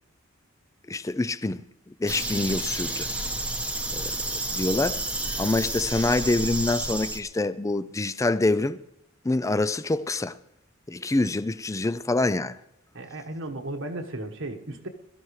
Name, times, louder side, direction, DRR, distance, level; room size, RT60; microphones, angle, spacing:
voice 1, 0.9-3.1 3.9-5.0 5.4-8.8 9.2-10.3 10.9-12.6, left 2 dB, 15° left, 0.4 m, -26 dB
sound 1, 2.1-7.2, right 2 dB, 5° right, 0.9 m, -30 dB
voice 2, 12.9-14.9, right 1 dB, 65° right, 1.4 m, -35 dB
22.0 x 13.5 x 3.2 m
head